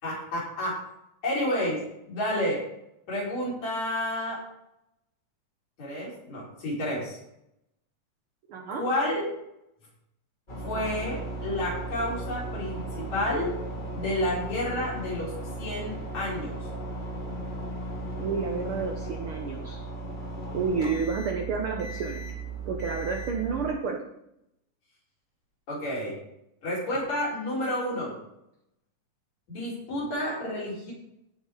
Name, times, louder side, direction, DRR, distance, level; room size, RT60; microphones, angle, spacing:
voice 1, 0.0-0.8 1.2-1.8 2.1-2.6 3.1-4.4 5.8-7.2 8.7-9.2 10.6-13.5 13.9-15.3 15.6-16.5 25.7-26.1 26.6-28.1 29.5-30.9, left 1 dB, 55° left, -5 dB, 5.7 m, -30 dB
voice 2, 8.5-8.9 18.2-19.8 20.5-22.3 22.6-24.1, right 5 dB, 85° right, 3 dB, 1.1 m, -30 dB
sound 1, 10.5-23.7, right 2 dB, 20° left, 1.7 m, -36 dB
16.5 x 5.9 x 4.9 m, 0.80 s
omnidirectional pair, 3.8 m